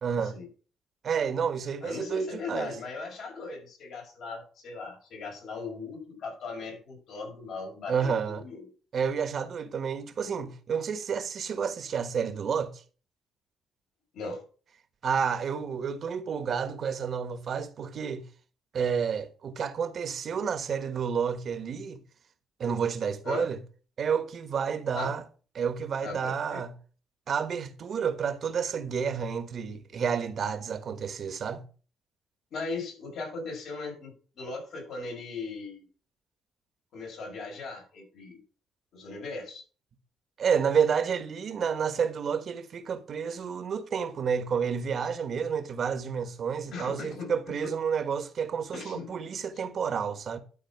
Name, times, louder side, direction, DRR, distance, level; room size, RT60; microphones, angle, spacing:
voice 1, 0.0-0.4 1.0-2.7 7.9-8.4 8.9-12.8 15.0-18.3 18.7-22.0 22.6-23.6 24.0-25.2 25.5-26.7 27.3-31.6 40.4-50.4, right 6 dB, 55° right, 1.3 m, -30 dB
voice 2, 1.8-8.7 14.1-14.4 23.2-23.5 24.9-25.1 26.0-26.6 32.5-35.9 36.9-38.4 38.9-39.6 46.7-47.6 48.7-49.1, left 3 dB, 70° left, 5.7 m, -38 dB
12.5 x 4.4 x 5.8 m
cardioid pair, 90°, 0 cm